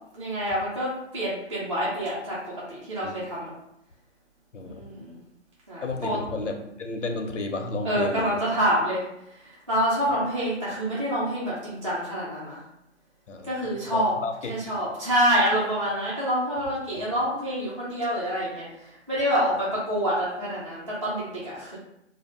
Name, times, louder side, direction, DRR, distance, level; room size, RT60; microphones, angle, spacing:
voice 1, 0.1-2.4 2.7-3.5 4.6-5.2 5.7-6.2 7.8-9.0 9.4-12.6 13.4-14.1 14.5-21.8, equal, 25° right, -9 dB, 0.5 m, -27 dB
voice 2, 5.8-8.4 10.1-10.3 13.3-14.8 16.9-17.1, left 3 dB, 85° left, 5 dB, 0.6 m, -33 dB
2.3 x 2.1 x 3.1 m, 0.81 s
figure-of-eight pair, 160°, 36 cm